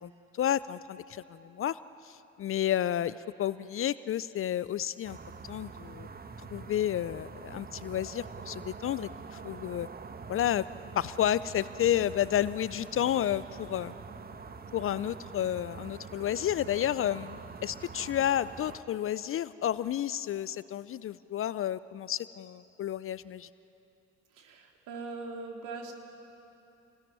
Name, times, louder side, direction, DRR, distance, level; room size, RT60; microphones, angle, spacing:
voice 1, 0.0-5.2 5.5-6.1 6.4-9.9 10.3-10.6 10.9-13.9 14.7-23.5, left 11 dB, 35° left, 17 dB, 0.6 m, -31 dB
sound 1, 5.0-18.8, right 5 dB, 25° right, 1.3 m, -45 dB
voice 2, 24.3-25.9, right 3 dB, 55° right, 2 dB, 3.7 m, -41 dB
27.5 x 20.0 x 9.7 m, 3.0 s
figure-of-eight pair, 55°, 37 cm